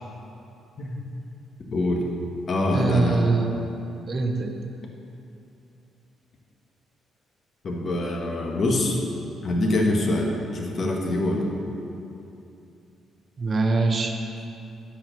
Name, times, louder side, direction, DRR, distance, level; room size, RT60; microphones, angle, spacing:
voice 1, 1.7-2.0 2.5-3.3 7.6-9.0 9.4-11.5, left 1 dB, 50° left, 0 dB, 1.2 m, -24 dB
voice 2, 2.7-3.7 4.1-4.5 13.4-14.2, right 3 dB, 40° right, 4 dB, 0.7 m, -23 dB
7.4 x 4.5 x 6.6 m, 2.7 s
cardioid pair, 90°, 0 cm